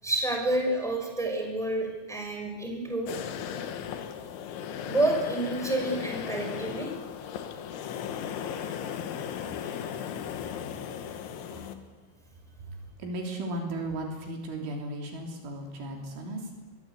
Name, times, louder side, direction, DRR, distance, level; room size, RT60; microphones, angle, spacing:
voice 1, 0.0-3.1 4.8-6.9 9.6-9.8, right 1 dB, ahead, 2 dB, 5.3 m, -29 dB
sound 1, 3.1-11.7, left 8 dB, 70° left, 3.8 m, -36 dB
voice 2, 11.5-12.0 12.6-16.6, right 1 dB, 70° right, 2 dB, 5.7 m, -36 dB
25.0 x 23.0 x 8.3 m, 1.2 s
omnidirectional pair, 5.8 m